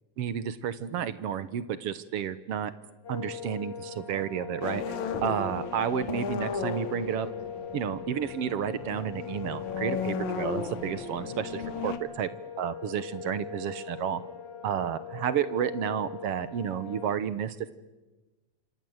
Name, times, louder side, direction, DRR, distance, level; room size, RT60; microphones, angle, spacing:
voice 1, 0.2-2.7 3.1-7.3 7.7-12.3 12.6-14.2 14.6-17.7, right 9 dB, 65° right, 14 dB, 1.8 m, -31 dB
sound 1, 3.0-17.1, left 7 dB, 50° left, 3.4 m, -41 dB
sound 2, 4.6-12.0, left 6 dB, 80° left, 3.0 m, -35 dB
28.0 x 26.0 x 8.0 m, 1.1 s
omnidirectional pair, 3.4 m